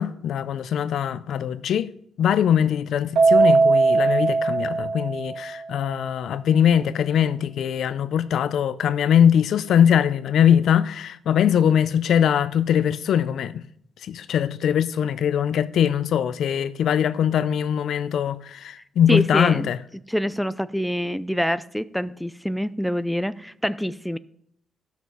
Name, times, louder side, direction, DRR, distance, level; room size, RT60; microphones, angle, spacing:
voice 1, 0.0-1.9 2.2-13.6 14.0-19.8, left 9 dB, 70° left, 0.5 m, -21 dB
Keyboard (musical), 3.1-5.6, right 4 dB, 75° right, 1.4 m, -19 dB
voice 2, 19.1-19.7 20.1-24.2, equal, ahead, 0.4 m, -25 dB
13.0 x 6.3 x 5.3 m
cardioid pair, 95°, 0 cm